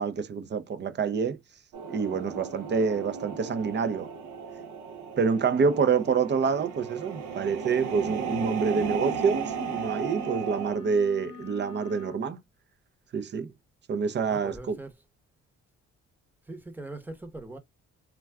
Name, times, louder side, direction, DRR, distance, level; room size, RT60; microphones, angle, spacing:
voice 1, 0.0-1.4 1.9-4.1 5.2-12.4 13.1-13.5 13.9-14.8, right 5 dB, 35° right, 0.5 m, -27 dB
sound 1, 1.7-10.8, right 6 dB, 75° right, 0.9 m, -35 dB
voice 2, 5.6-6.0 14.3-14.9 16.4-17.6, right 2 dB, 5° right, 0.8 m, -42 dB
sound 2, 7.6-12.3, left 5 dB, 80° left, 0.6 m, -45 dB
2.3 x 2.3 x 3.3 m
cardioid pair, 90°, 30 cm